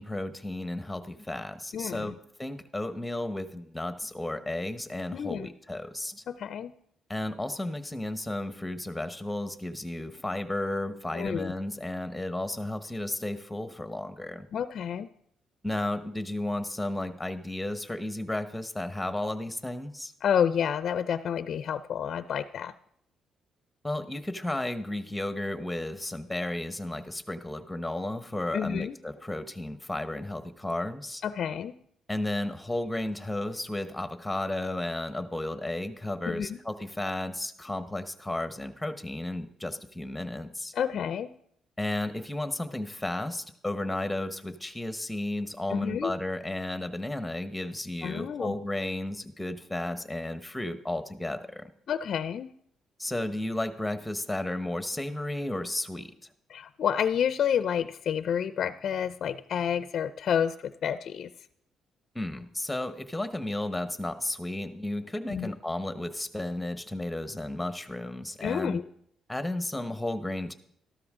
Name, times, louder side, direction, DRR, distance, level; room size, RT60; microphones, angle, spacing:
voice 1, 0.0-6.2 7.1-14.5 15.6-20.1 23.8-31.2 32.1-40.7 41.8-51.7 53.0-56.1 62.1-68.8 69.3-70.5, left 1 dB, 5° left, 10 dB, 1.1 m, -33 dB
voice 2, 1.7-2.2 5.1-5.5 6.3-6.7 11.1-11.5 14.5-15.1 20.2-22.7 28.5-28.9 31.2-31.7 36.3-36.6 40.7-41.3 45.7-46.1 48.0-48.6 51.9-52.5 56.5-61.3 65.3-65.5 68.4-68.9, left 8 dB, 60° left, 13 dB, 0.4 m, -29 dB
13.0 x 12.5 x 3.7 m, 0.69 s
cardioid pair, 90°, 0 cm